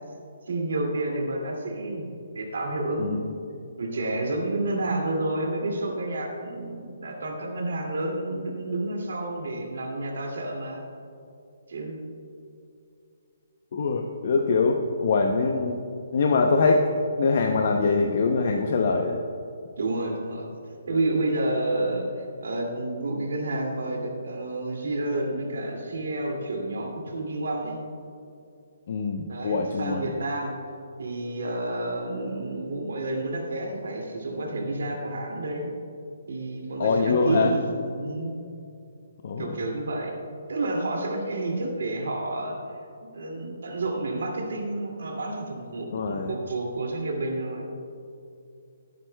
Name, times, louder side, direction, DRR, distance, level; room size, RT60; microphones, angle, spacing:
voice 1, 0.5-3.3 3.8-10.8 11.7-12.0 19.8-20.5 20.9-27.8 29.3-30.6 31.0-35.7 36.3-38.3 39.4-40.2 40.5-42.6 43.1-47.7, right 2 dB, 75° right, 0 dB, 2.3 m, -30 dB
voice 2, 13.7-15.8 16.1-16.9 17.2-19.2 28.9-30.1 36.8-37.5 39.2-39.5 45.9-46.3, left 4 dB, 45° left, 3 dB, 0.6 m, -23 dB
15.5 x 9.1 x 2.2 m, 2.6 s
hypercardioid pair, 175°, 0 cm